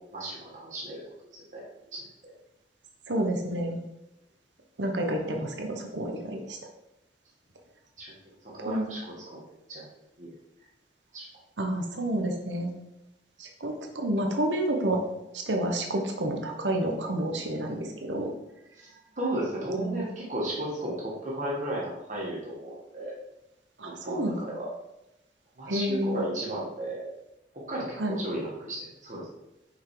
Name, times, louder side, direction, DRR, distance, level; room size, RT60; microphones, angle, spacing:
voice 1, 0.1-1.0 1.3-1.6 1.9-2.1 8.0-8.2 8.4-9.9 10.2-10.3 11.1-11.3 18.8-18.9 19.2-23.1 23.8-24.7 25.6-27.1 27.5-29.3, right 1 dB, 45° right, -4 dB, 1.7 m, -34 dB
voice 2, 3.1-3.8 4.8-6.6 8.6-8.9 11.6-12.7 13.4-15.0 15.3-18.3 19.7-20.1 23.8-24.4 25.7-26.2 28.0-28.2, right 1 dB, 90° right, 2 dB, 1.1 m, -29 dB
5.9 x 5.4 x 4.9 m, 0.91 s
head